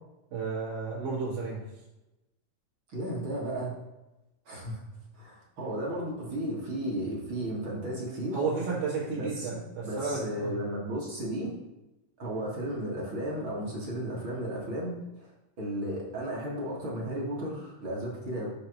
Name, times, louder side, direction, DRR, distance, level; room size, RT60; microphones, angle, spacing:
voice 1, 0.3-1.6 8.3-10.5, right 4 dB, 75° right, -11 dB, 3.2 m, -32 dB
voice 2, 2.9-3.7 4.5-4.8 5.2-8.4 9.2-9.5 9.8-11.6 12.2-14.9 15.2-15.3 15.6-18.5, right 1 dB, 45° right, -4 dB, 1.9 m, -34 dB
6.9 x 3.5 x 6.1 m, 0.99 s
omnidirectional pair, 3.6 m